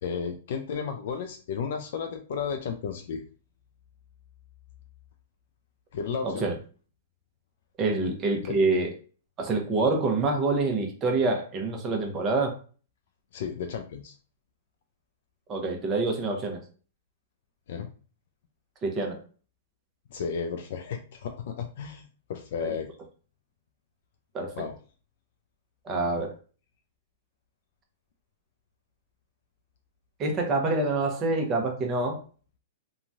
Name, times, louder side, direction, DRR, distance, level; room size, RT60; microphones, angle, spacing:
voice 1, 0.0-3.2 5.9-6.5 8.4-8.5 13.3-14.1 17.7-17.9 20.1-22.9 24.6-24.7, left 6 dB, 65° left, 5 dB, 0.4 m, -33 dB
voice 2, 6.2-6.5 7.8-8.9 9.4-12.6 15.5-16.6 18.8-19.2 22.6-22.7 24.3-24.6 25.8-26.4 30.2-32.2, right 3 dB, 25° right, 2 dB, 0.8 m, -26 dB
3.0 x 2.2 x 2.6 m, 0.39 s
hypercardioid pair, 140°, 0 cm